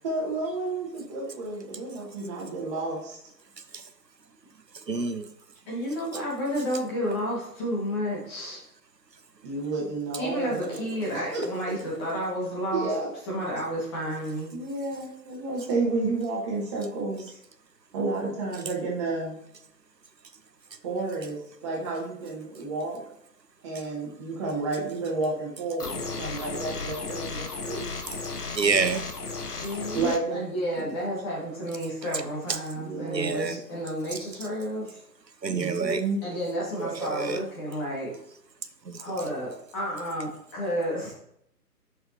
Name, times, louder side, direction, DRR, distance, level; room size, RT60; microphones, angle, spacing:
voice 1, 0.0-3.2 9.4-10.8 11.1-11.4 12.7-13.1 14.5-17.3 17.9-19.4 20.8-23.0 23.6-27.9 29.9-30.4 30.8-30.9 32.7-33.6 35.5-36.2, right 3 dB, 20° right, -5 dB, 2.1 m, -31 dB
voice 2, 4.9-5.3 28.6-29.0 33.1-33.5 35.4-36.0 36.8-37.4, right 5 dB, 85° right, 11 dB, 0.9 m, -26 dB
voice 3, 5.7-8.6 10.2-12.9 13.3-14.5 29.6-35.0 36.2-38.1 39.0-41.1, equal, 15° left, -4 dB, 1.8 m, -31 dB
sound 1, 25.8-30.2, left 4 dB, 70° left, 1.2 m, -34 dB
11.0 x 6.5 x 2.8 m, 0.73 s
figure-of-eight pair, 145°, 49 cm